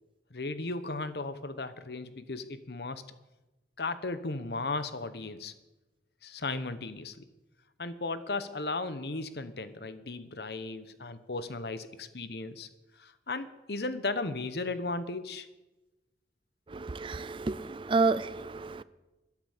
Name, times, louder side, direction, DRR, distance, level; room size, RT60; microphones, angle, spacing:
voice 1, 0.3-3.0 3.8-5.5 6.2-7.3 7.8-12.7 13.0-15.5, left 3 dB, 60° left, 1.0 m, -36 dB
voice 2, 16.7-18.8, right 3 dB, 30° right, 0.4 m, -30 dB
13.0 x 10.0 x 8.2 m
head